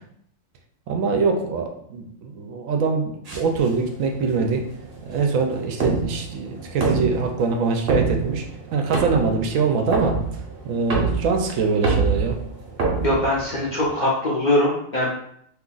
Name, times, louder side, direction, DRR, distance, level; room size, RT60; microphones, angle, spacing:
voice 1, 0.9-4.7 5.0-8.4 8.7-10.2 10.6-12.4, right 4 dB, 75° right, 3 dB, 1.0 m, -23 dB
sound 1, 3.3-13.9, right 4 dB, 50° right, 1.0 m, -27 dB
voice 2, 13.0-15.1, left 1 dB, 50° left, -5 dB, 0.6 m, -22 dB
2.8 x 2.4 x 3.8 m, 0.69 s
omnidirectional pair, 1.4 m